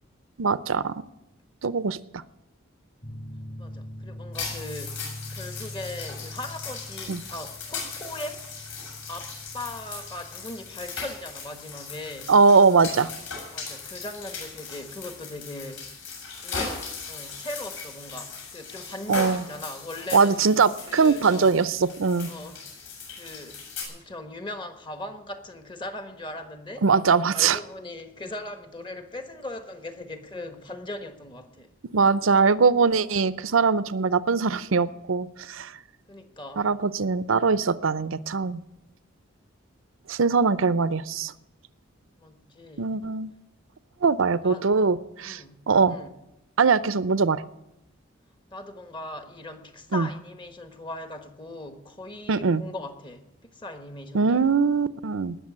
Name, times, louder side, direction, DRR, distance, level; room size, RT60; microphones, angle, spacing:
voice 1, 0.4-1.0 1.6-2.2 7.1-7.2 12.3-13.1 19.1-19.4 20.1-22.3 26.8-27.6 31.9-35.7 36.6-38.6 40.1-41.3 42.8-43.3 44.0-46.0 46.6-47.4 49.9-50.1 52.3-52.6 54.1-55.4, right 5 dB, 75° right, 16 dB, 0.6 m, -22 dB
sound 1, 3.0-14.2, left 1 dB, 40° left, 5.8 m, -43 dB
voice 2, 3.6-8.7 9.1-12.3 13.5-15.9 16.4-16.8 17.1-20.5 20.9-21.6 22.3-22.6 23.1-23.6 23.9-26.9 27.3-31.7 36.1-36.7 42.2-42.9 44.4-44.7 45.2-46.1 48.5-54.4, left 1 dB, 20° left, 7 dB, 1.2 m, -39 dB
sound 2, 4.3-23.8, left 4 dB, 60° left, 7.7 m, -38 dB
19.5 x 6.9 x 9.8 m, 0.92 s
head